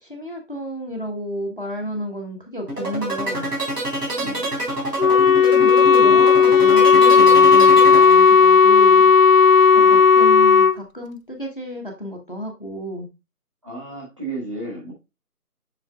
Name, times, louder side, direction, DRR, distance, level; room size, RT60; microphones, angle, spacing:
voice 1, 0.0-3.5 5.5-9.1 9.7-13.1, equal, 35° left, 0.9 m, -31 dB
sound 1, 2.7-8.6, right 1 dB, 85° right, 3.9 m, -26 dB
voice 2, 4.1-4.5 9.7-10.1 13.6-14.9, right 2 dB, 20° right, 1.5 m, -33 dB
Wind instrument woodwind instrument, 5.0-10.8, left 5 dB, 60° left, 0.5 m, -13 dB
7.4 x 5.7 x 2.2 m
figure-of-eight pair, 170°, 46 cm